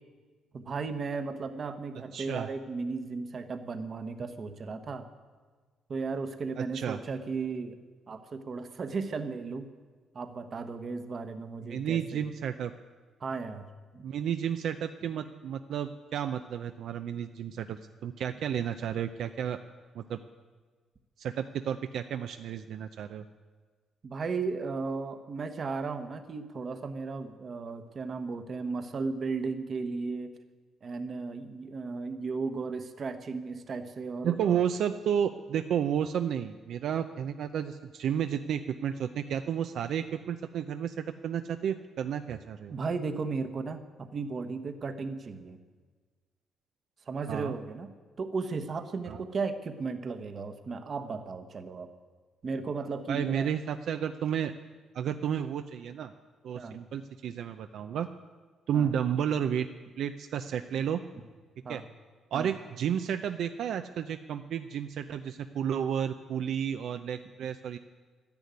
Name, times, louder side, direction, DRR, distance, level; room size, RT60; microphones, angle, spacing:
voice 1, 0.5-5.1 5.9-7.8 8.1-9.7 10.1-12.2 13.2-14.0 24.0-30.3 30.8-34.6 42.7-45.6 47.1-47.9 48.2-51.9 52.4-53.5 56.5-56.8 58.7-58.9 61.6-61.8 62.3-62.5, right 4 dB, 35° right, 9 dB, 1.1 m, -35 dB
voice 2, 2.1-2.5 6.6-7.0 11.6-12.7 14.0-19.6 19.9-20.2 21.2-23.3 34.2-42.8 47.3-47.5 49.1-49.2 53.1-54.5 54.9-56.1 56.4-58.1 58.7-59.7 60.0-61.0 61.7-61.8 62.3-67.8, right 8 dB, 60° right, 8 dB, 0.6 m, -32 dB
12.5 x 10.5 x 9.5 m, 1.4 s
cardioid pair, 160°, 0 cm